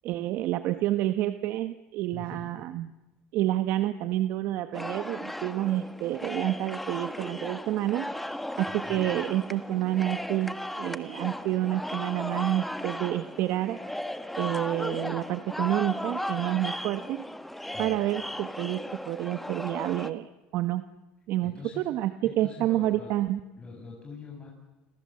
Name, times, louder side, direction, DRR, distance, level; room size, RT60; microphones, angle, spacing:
voice 1, 0.0-2.9 3.3-8.1 8.6-13.8 14.4-17.3 17.8-18.8 19.1-20.8 21.3-23.4, right 14 dB, 60° right, 10 dB, 1.1 m, -29 dB
voice 2, 2.1-2.5 8.7-9.1 17.7-18.0 21.4-21.9 22.2-23.1 23.6-24.5, left 4 dB, 25° left, -2 dB, 7.9 m, -44 dB
sound 1, 4.7-20.1, left 1 dB, 5° left, 1.5 m, -36 dB
29.0 x 26.0 x 7.7 m, 1.1 s
supercardioid pair, 110°, 4 cm